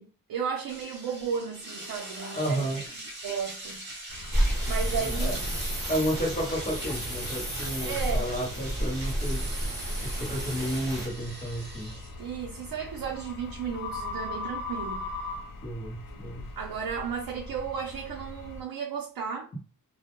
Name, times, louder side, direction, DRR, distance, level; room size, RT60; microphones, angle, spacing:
voice 1, 0.0-2.8 3.2-3.8 4.6-5.4 7.8-8.3 8.8-8.9 12.2-15.0 16.6-19.5, right 7 dB, 85° right, 0.6 m, -34 dB
sound 1, 0.7-14.2, right 1 dB, 30° right, 1.0 m, -43 dB
voice 2, 2.3-2.8 5.0-5.4 5.9-9.5 10.0-11.9 15.6-16.5, equal, 25° left, 0.7 m, -32 dB
sound 2, 4.1-18.6, left 2 dB, 70° left, 0.6 m, -41 dB
sound 3, 4.3-11.1, right 1 dB, 10° right, 1.0 m, -31 dB
2.1 x 2.1 x 2.9 m
wide cardioid pair, 125°, 35 cm